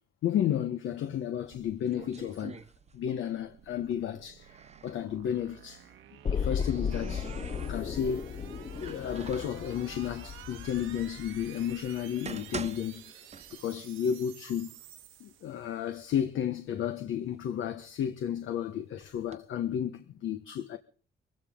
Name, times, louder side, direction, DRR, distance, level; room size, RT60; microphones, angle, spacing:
voice 1, 0.2-2.6 2.9-4.6 4.8-5.9 6.3-7.3 7.6-8.2 8.8-13.1 13.5-14.8 15.2-20.8, left 9 dB, 75° left, 1.3 m, -32 dB
sound 1, 1.4-3.3 3.6-5.0 6.1-8.2 8.7-9.6 10.4-10.5 11.2-11.3 11.9-13.9 14.2-14.3 15.0-15.1 15.5-16.2 16.7-18.4 19.0-19.4, right 5 dB, 35° right, 1.2 m, -45 dB
sound 2, 1.7-15.9, right 11 dB, 90° right, 1.6 m, -52 dB
sound 3, 6.2-12.2 12.5-12.6, left 6 dB, 30° left, 0.7 m, -36 dB
24.0 x 16.0 x 3.8 m
cardioid pair, 90°, 20 cm